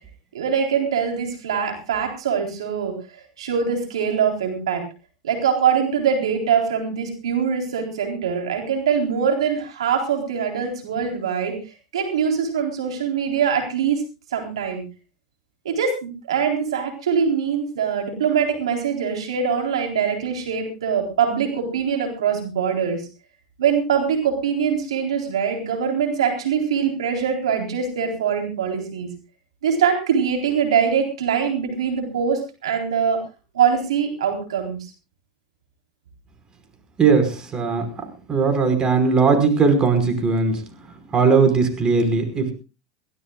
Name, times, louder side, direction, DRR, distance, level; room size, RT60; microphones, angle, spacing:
voice 1, 0.3-4.8 5.2-11.6 11.9-14.0 14.3-14.8 15.6-23.0 23.6-29.1 29.6-33.2 33.5-34.8, right 7 dB, 85° right, 3 dB, 3.9 m, -23 dB
voice 2, 37.0-40.6 41.1-42.5, right 4 dB, 30° right, 6 dB, 5.2 m, -19 dB
23.5 x 16.5 x 2.4 m, 0.31 s
hypercardioid pair, 100°, 3 cm